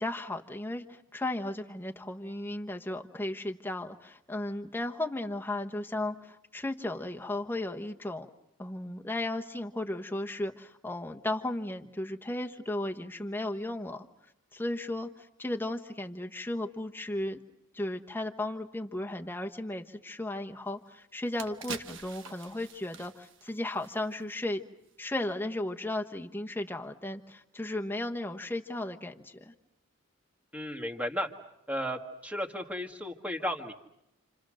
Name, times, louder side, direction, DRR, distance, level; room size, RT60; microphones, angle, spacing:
voice 1, 0.0-8.3 8.6-14.1 14.5-17.4 17.7-24.6 25.0-29.5, left 1 dB, 10° left, 4 dB, 1.1 m, -35 dB
sound 1, 20.7-20.8 21.2-24.4 24.7-24.9, right 6 dB, 60° right, 1.3 m, -45 dB
voice 2, 30.5-31.3 31.7-33.7, equal, 5° right, 4 dB, 1.8 m, -34 dB
29.0 x 27.5 x 6.4 m, 0.84 s
head